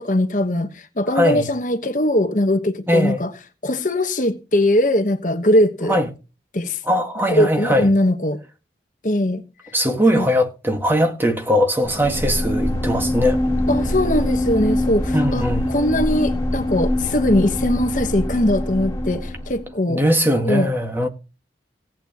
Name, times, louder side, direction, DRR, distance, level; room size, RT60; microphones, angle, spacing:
voice 1, 0.0-3.3 3.6-6.0 6.5-6.8 7.3-8.4 9.0-9.4 10.2-10.3 13.7-20.0 20.4-20.7, left 1 dB, 45° left, 1.3 m, -20 dB
voice 2, 1.1-1.5 2.9-3.2 5.9-6.1 6.9-7.9 9.7-13.4 15.1-15.7 19.9-21.1, equal, 10° right, 1.8 m, -20 dB
sound 1, 11.8-19.7, left 1 dB, 15° left, 3.2 m, -23 dB
17.5 x 9.0 x 3.0 m
head